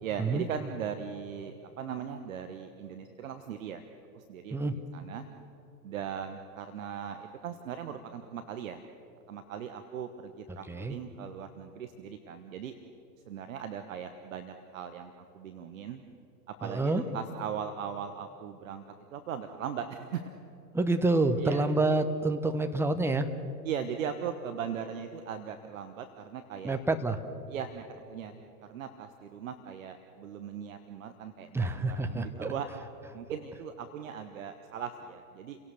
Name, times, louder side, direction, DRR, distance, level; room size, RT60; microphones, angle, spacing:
voice 1, 0.0-3.8 4.1-5.2 5.8-8.8 9.3-12.8 13.3-16.0 16.5-18.8 19.1-20.3 21.0-21.1 21.4-21.7 23.6-26.8 27.5-28.4 28.7-32.7 33.1-35.6, right 8 dB, 55° right, 8 dB, 1.3 m, -39 dB
voice 2, 16.6-17.0 20.7-23.3 26.6-27.2 31.5-32.5, right 2 dB, 5° right, 7 dB, 0.9 m, -27 dB
30.0 x 17.5 x 6.8 m, 2.9 s
figure-of-eight pair, 95°, 47 cm